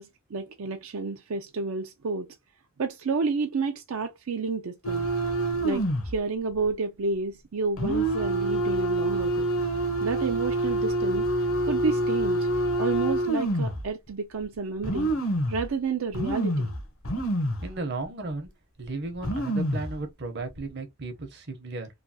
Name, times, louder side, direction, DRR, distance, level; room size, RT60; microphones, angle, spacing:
voice 1, 0.0-2.3 2.8-5.1 5.6-9.5 10.0-11.3 11.7-12.5 12.8-15.1 15.5-16.7, right 4 dB, 85° right, 0.5 m, -30 dB
sound 1, 4.8-6.2 6.5-6.7 7.8-13.8 14.4-14.5 14.8-15.7 16.1-17.7 18.0-18.1 18.8-18.9 19.1-19.9 20.5-20.7, right 1 dB, 75° left, 0.8 m, -27 dB
voice 2, 17.6-18.5 18.8-21.9, right 3 dB, 55° right, 0.8 m, -35 dB
3.1 x 2.3 x 2.7 m
head